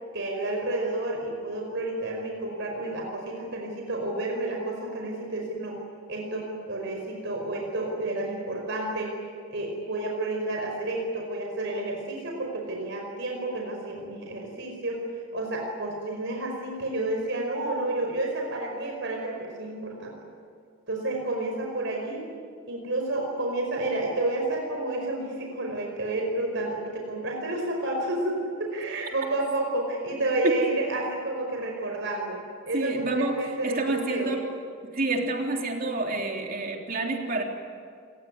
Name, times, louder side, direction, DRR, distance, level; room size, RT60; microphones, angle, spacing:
voice 1, 0.1-5.8 6.1-15.0 15.3-20.1 20.9-22.2 22.7-32.4 32.7-34.4, right 2 dB, 60° right, 0 dB, 5.0 m, -30 dB
voice 2, 32.7-33.4 33.6-34.5 34.9-37.4, right 2 dB, 45° right, 1 dB, 3.6 m, -28 dB
28.0 x 19.5 x 9.6 m, 2.1 s
head